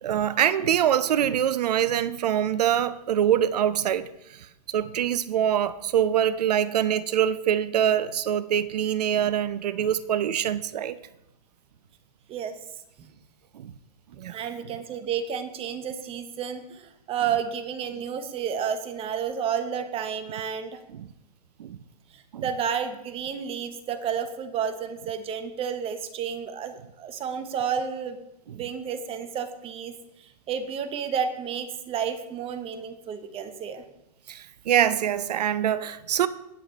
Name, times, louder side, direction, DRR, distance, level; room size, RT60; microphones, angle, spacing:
voice 1, 0.0-11.0 13.5-13.7 14.2-14.4 20.9-21.1 21.6-21.8 22.3-22.4 28.5-28.6 34.3-36.3, right 10 dB, 70° right, 0.6 m, -24 dB
voice 2, 12.3-12.6 14.3-20.8 22.1-33.8, right 7 dB, 25° right, 1.1 m, -31 dB
18.5 x 6.5 x 3.3 m
hypercardioid pair, 115°, 21 cm